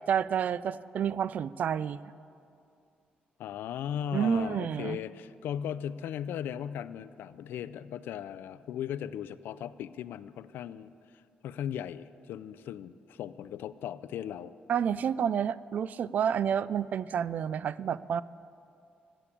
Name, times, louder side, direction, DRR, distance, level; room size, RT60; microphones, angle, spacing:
voice 1, 0.1-2.0 4.1-5.0 14.7-18.2, right 8 dB, 50° right, 18 dB, 0.3 m, -29 dB
voice 2, 3.4-10.9 11.4-14.5, left 9 dB, 85° left, 15 dB, 0.4 m, -37 dB
15.5 x 7.5 x 8.4 m, 2.5 s
cardioid pair, 155°, 3 cm